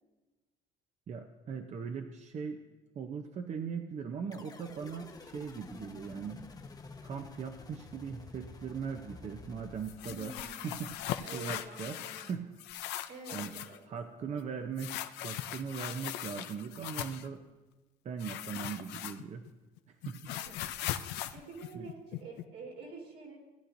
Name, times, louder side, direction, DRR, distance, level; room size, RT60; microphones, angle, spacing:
voice 1, 1.1-2.6 2.9-6.4 7.0-12.5 13.3-13.5 13.9-17.4 18.0-19.5 19.9-20.2 21.7-21.9, right 6 dB, 45° right, 6 dB, 0.7 m, -40 dB
sound 1, 4.3-10.8, left 4 dB, 20° left, 0.7 m, -50 dB
sound 2, 9.8-12.3 12.6-13.8 14.8-17.3 18.2-19.5 19.8-22.4, left 12 dB, 90° left, 0.5 m, -39 dB
voice 2, 10.0-11.0 11.2-12.4 13.1-13.8 14.1-14.7 20.3-20.6 21.3-23.4, right 3 dB, 80° right, -3 dB, 3.6 m, -48 dB
17.0 x 9.7 x 2.6 m, 1.2 s
cardioid pair, 110°, 17 cm